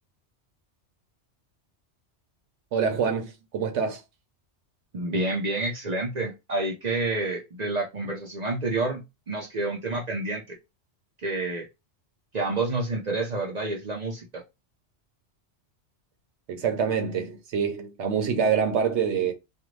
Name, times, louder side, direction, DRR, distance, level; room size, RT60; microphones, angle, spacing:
voice 1, 2.7-4.0 16.5-19.3, right 6 dB, 75° right, 1.0 m, -26 dB
voice 2, 4.9-10.6 11.2-11.7 12.3-14.4, right 2 dB, 45° right, 0.6 m, -29 dB
2.5 x 2.5 x 3.0 m
omnidirectional pair, 1.2 m